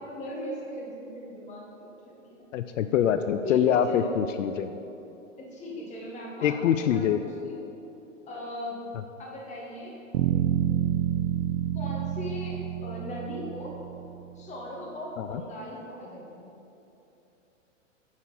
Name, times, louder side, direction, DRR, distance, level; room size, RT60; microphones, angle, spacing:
voice 1, 0.0-2.3 3.4-4.2 5.4-7.6 8.3-8.8 9.2-10.0 11.7-13.8 14.3-16.5, equal, 20° left, -3 dB, 1.5 m, -39 dB
voice 2, 2.5-4.8 6.4-7.2 15.2-15.4, left 9 dB, 75° left, 8 dB, 0.5 m, -24 dB
sound 1, 10.1-14.2, right 11 dB, 45° right, 0.7 m, -28 dB
9.5 x 4.3 x 5.5 m, 2.9 s
hypercardioid pair, 135°, 39 cm